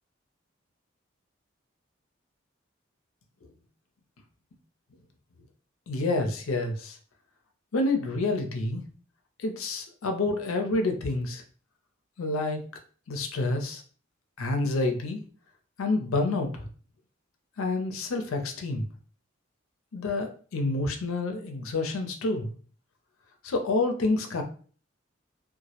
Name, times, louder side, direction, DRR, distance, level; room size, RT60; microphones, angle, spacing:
voice 1, 5.9-7.0 7.7-8.8 9.4-11.4 12.2-12.6 13.1-13.8 14.4-15.2 15.8-16.7 17.6-18.8 19.9-22.5 23.4-24.4, left 2 dB, 90° left, 5 dB, 0.5 m, -28 dB
2.1 x 2.0 x 2.8 m, 0.42 s
head